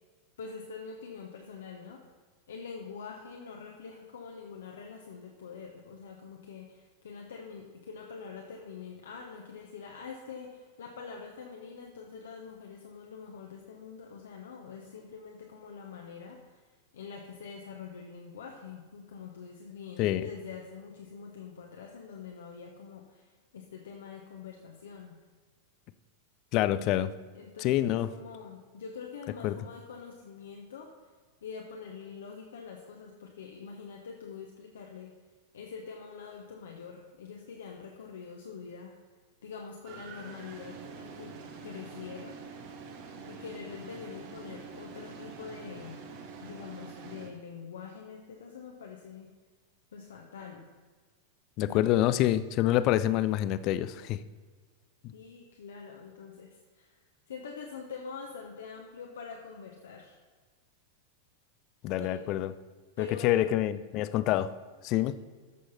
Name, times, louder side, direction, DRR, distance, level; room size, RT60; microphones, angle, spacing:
voice 1, 0.4-2.0 2.5-25.2 26.6-26.8 27.3-30.9 31.4-35.1 35.5-39.0 39.4-41.3 41.6-42.3 43.2-46.0 46.4-49.3 49.9-50.6 51.6-51.9 55.1-56.9 57.3-60.2 62.0-62.3 63.0-63.3, left 6 dB, 65° left, 1 dB, 1.0 m, -45 dB
voice 2, 26.5-27.1 27.6-28.1 29.4-29.6 51.6-54.2 55.0-55.1 61.8-62.5 63.0-64.5 64.8-65.1, left 13 dB, 40° left, 14 dB, 0.5 m, -27 dB
sound 1, 39.8-47.3, right 5 dB, 45° right, 1.3 m, -46 dB
14.0 x 6.4 x 4.3 m, 1.5 s
figure-of-eight pair, 90°, 0 cm